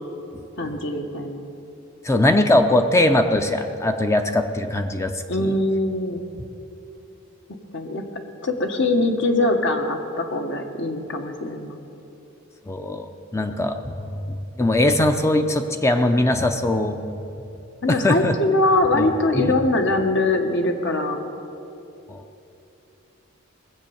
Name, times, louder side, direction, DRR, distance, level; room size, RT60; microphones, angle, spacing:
voice 1, 0.6-1.4 5.3-6.2 7.7-8.0 8.4-11.8 17.8-21.2, left 2 dB, 60° left, 5 dB, 1.2 m, -22 dB
voice 2, 2.0-5.6 12.6-17.0 17.9-18.3 18.9-19.1 19.3-19.5 22.1-22.2, left 1 dB, 15° left, 6 dB, 0.6 m, -21 dB
19.5 x 7.9 x 7.1 m, 2.8 s
head